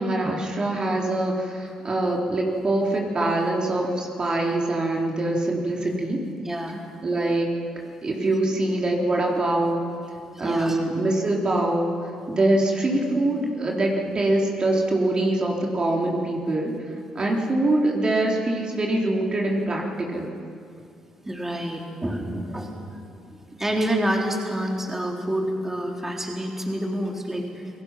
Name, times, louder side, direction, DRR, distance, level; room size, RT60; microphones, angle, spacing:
voice 1, 0.0-6.2 7.0-7.5 8.0-9.8 10.4-16.7 17.2-20.3, right 2 dB, 40° right, -1 dB, 3.6 m, -24 dB
voice 2, 5.7-6.1 6.4-6.8 10.3-10.8 12.9-13.1 21.3-23.0 23.6-27.7, right 1 dB, 15° right, 0 dB, 3.9 m, -28 dB
28.0 x 17.5 x 6.0 m, 2.4 s
supercardioid pair, 55°, 2 cm